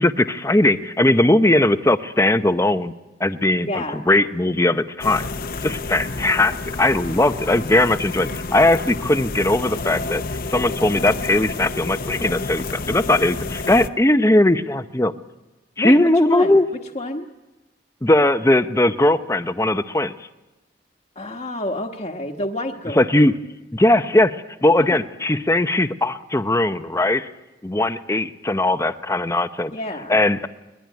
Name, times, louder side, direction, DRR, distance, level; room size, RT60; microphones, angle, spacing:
voice 1, 0.0-2.9 3.2-5.2 5.6-10.2 10.5-15.1 15.8-16.6 18.0-20.3 22.9-23.3 23.7-27.3 27.6-29.7 30.1-30.5, left 1 dB, 15° left, 11 dB, 0.8 m, -19 dB
voice 2, 3.7-4.0 15.8-16.6 16.9-17.3 21.1-23.0 24.8-25.0 29.7-30.2, left 1 dB, 35° left, -1 dB, 1.3 m, -28 dB
sound 1, 5.0-13.9, left 3 dB, 50° left, 0.9 m, -30 dB
23.5 x 20.0 x 9.4 m, 1.1 s
head